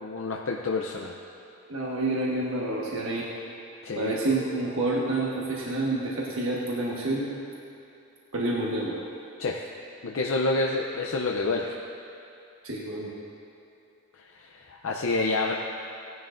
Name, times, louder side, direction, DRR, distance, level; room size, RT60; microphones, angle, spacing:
voice 1, 0.0-1.1 3.8-4.2 9.4-9.6 10.0-11.8 14.3-15.5, left 3 dB, 65° left, 0 dB, 0.6 m, -28 dB
voice 2, 1.7-3.3 4.0-7.4 8.3-8.9 12.6-13.1, right 2 dB, 65° right, -4 dB, 1.4 m, -28 dB
17.0 x 11.0 x 2.6 m, 2.7 s
head